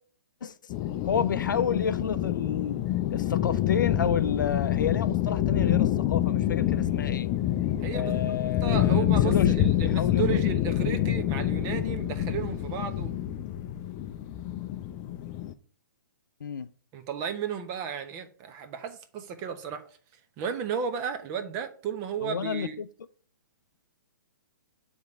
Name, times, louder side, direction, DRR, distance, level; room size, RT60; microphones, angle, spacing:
sound 1, 0.7-15.5, left 12 dB, 30° left, 0.5 m, -27 dB
voice 1, 1.1-2.8 3.1-7.3 7.9-10.4 10.8-11.2 16.4-16.7 22.2-22.9, left 7 dB, 80° left, 0.5 m, -31 dB
voice 2, 7.8-8.1 8.6-13.1 16.9-19.9 20.4-22.8, right 7 dB, 30° right, 1.0 m, -34 dB
8.1 x 3.5 x 5.3 m
hypercardioid pair, 135°, 10 cm